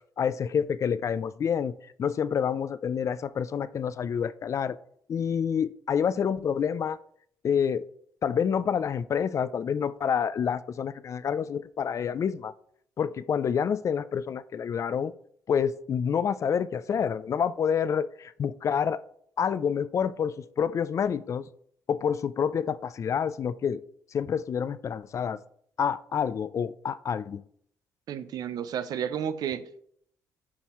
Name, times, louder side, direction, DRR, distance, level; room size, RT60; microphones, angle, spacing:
voice 1, 0.2-1.7 2.0-4.8 5.1-7.0 7.4-7.8 8.2-12.5 13.0-15.1 15.5-19.0 19.4-21.5 21.9-23.8 24.1-25.4 25.8-27.4, left 7 dB, 50° left, 0.4 m, -28 dB
voice 2, 28.1-29.8, right 8 dB, 70° right, 0.6 m, -32 dB
9.7 x 5.5 x 3.0 m
cardioid pair, 90°, 7 cm